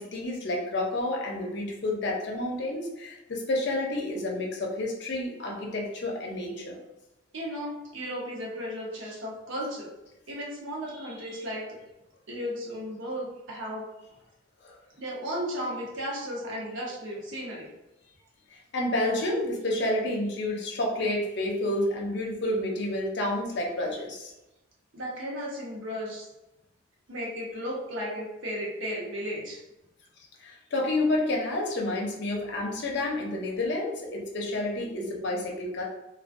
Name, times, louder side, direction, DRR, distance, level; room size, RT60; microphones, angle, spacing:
voice 1, 0.0-6.8 14.6-14.8 18.5-24.3 30.4-35.8, left 1 dB, 60° left, -1 dB, 0.6 m, -30 dB
voice 2, 7.3-9.9 10.3-11.8 12.3-13.8 15.0-17.7 24.9-26.3 27.1-29.6, equal, 80° right, -3 dB, 0.8 m, -35 dB
2.4 x 2.2 x 2.5 m, 0.94 s
head